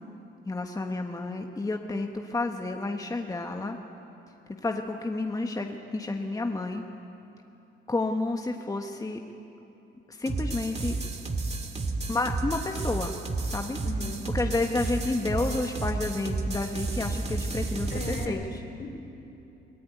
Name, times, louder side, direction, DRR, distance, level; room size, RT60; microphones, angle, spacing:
voice 1, 0.4-3.8 4.6-6.8 7.9-9.2 10.1-11.0 12.1-13.1 13.4-13.8 14.3-18.6, left 2 dB, 15° left, 3 dB, 1.4 m, -30 dB
sound 1, 10.3-18.3, right 3 dB, 35° right, 2.1 m, -31 dB
voice 2, 13.8-14.3 17.9-18.5 18.8-18.9, left 3 dB, 50° left, 4 dB, 3.6 m, -37 dB
24.0 x 17.0 x 9.4 m, 2.9 s
cardioid pair, 90°, 20 cm